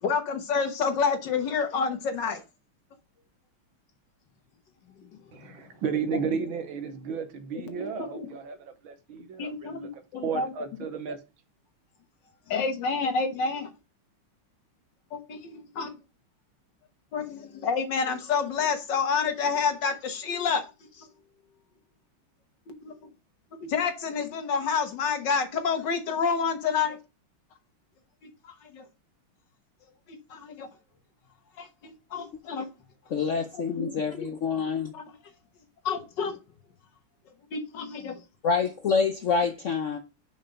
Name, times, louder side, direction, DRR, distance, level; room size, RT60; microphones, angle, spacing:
voice 1, 0.0-2.4 5.4-5.5 7.8-8.3 9.4-10.5 12.5-13.7 15.1-15.9 17.1-20.6 21.0-21.1 22.7-22.9 23.6-27.0 28.2-28.9 30.1-30.7 31.6-32.7 33.8-33.9 34.1-34.3 34.9-35.0 35.9-36.4 37.5-38.2, left 5 dB, 60° left, 1.8 m, -29 dB
voice 2, 5.3-11.2, right 6 dB, 70° right, 1.8 m, -33 dB
voice 3, 33.1-34.9 38.4-40.0, left 5 dB, 85° left, 0.6 m, -26 dB
5.8 x 5.2 x 5.6 m
omnidirectional pair, 2.4 m